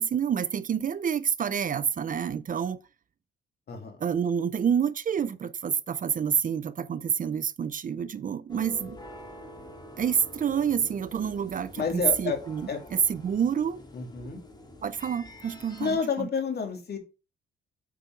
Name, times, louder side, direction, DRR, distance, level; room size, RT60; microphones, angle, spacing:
voice 1, 0.0-2.8 4.0-9.0 10.0-13.8 14.8-16.3, right 7 dB, 45° right, 0.6 m, -28 dB
voice 2, 3.7-4.0 11.8-12.4 12.7-12.8 13.9-14.4 15.8-17.0, left 5 dB, 55° left, 2.8 m, -29 dB
sound 1, 8.5-16.0, left 1 dB, 20° left, 2.3 m, -47 dB
8.6 x 5.3 x 4.6 m
cardioid pair, 90°, 20 cm